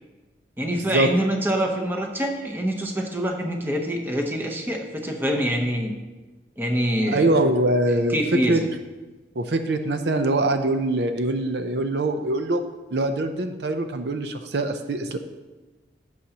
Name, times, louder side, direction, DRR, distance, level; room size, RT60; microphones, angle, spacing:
voice 1, 0.6-5.9 6.6-7.4 8.1-8.6, equal, 10° right, 1 dB, 0.9 m, -25 dB
voice 2, 7.1-8.2 8.5-8.6 9.4-12.6 12.9-15.2, right 2 dB, 70° right, 8 dB, 0.6 m, -23 dB
11.5 x 7.8 x 2.9 m, 1.2 s
head